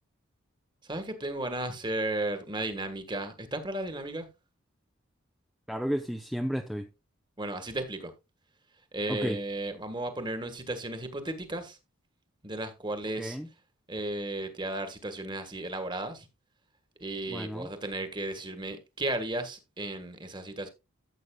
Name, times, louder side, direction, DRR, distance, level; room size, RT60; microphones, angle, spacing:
voice 1, 0.8-4.3 7.4-8.1 8.9-11.8 12.4-13.4 13.9-16.3 17.0-20.7, right 2 dB, 20° right, 1.5 m, -34 dB
voice 2, 5.7-6.9 9.1-9.4 13.2-13.5 17.3-17.7, equal, ahead, 0.6 m, -32 dB
14.0 x 8.1 x 2.3 m
head